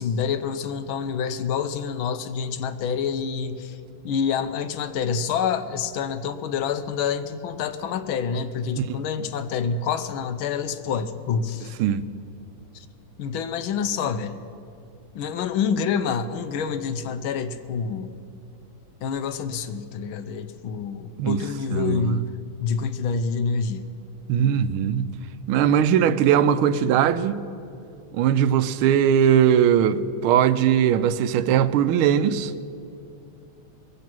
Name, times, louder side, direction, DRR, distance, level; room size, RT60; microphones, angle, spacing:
voice 1, 0.0-3.8 4.0-11.7 13.2-14.4 15.1-18.2 19.0-22.3 22.6-23.9, left 6 dB, 80° left, 1.5 m, -27 dB
voice 2, 21.7-22.2 24.3-25.1 25.5-27.4 28.1-32.5, right 9 dB, 90° right, 1.4 m, -20 dB
21.5 x 8.3 x 6.0 m
omnidirectional pair, 2.2 m